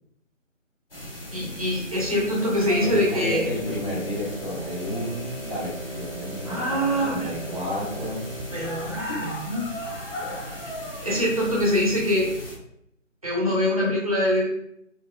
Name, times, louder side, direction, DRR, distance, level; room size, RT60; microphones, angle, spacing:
sound 1, 0.9-12.6, left 1 dB, 45° left, 1.0 m, -37 dB
voice 1, 1.3-3.4 6.5-7.5 8.5-9.7 10.6-12.3 13.2-14.5, equal, 30° right, -5 dB, 0.8 m, -24 dB
voice 2, 2.8-8.3, left 1 dB, 20° left, -8 dB, 0.7 m, -32 dB
sound 2, 2.9-9.1, right 1 dB, 85° right, 0.8 m, -38 dB
4.1 x 2.6 x 2.3 m, 0.76 s
figure-of-eight pair, 160°, 39 cm